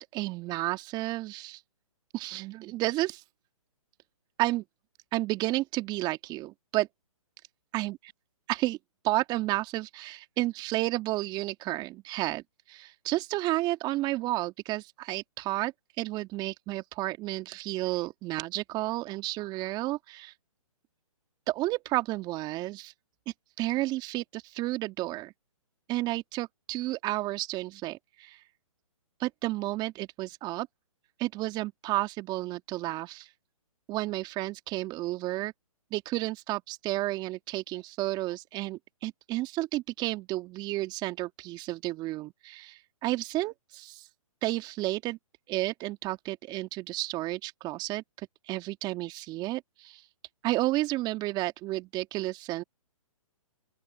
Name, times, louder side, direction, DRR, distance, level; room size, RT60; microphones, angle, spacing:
voice 1, 0.1-1.6 2.1-3.2 4.4-4.6 5.1-6.9 7.7-7.9 8.5-8.8 9.0-20.3 21.5-22.9 23.6-25.3 25.9-28.4 29.2-30.7 31.2-33.3 33.9-35.5 35.9-44.1 44.4-45.2 45.5-50.0 50.4-52.6, right 18 dB, 25° right, 2.2 m, -31 dB
open air
hypercardioid pair, 135°, 18 cm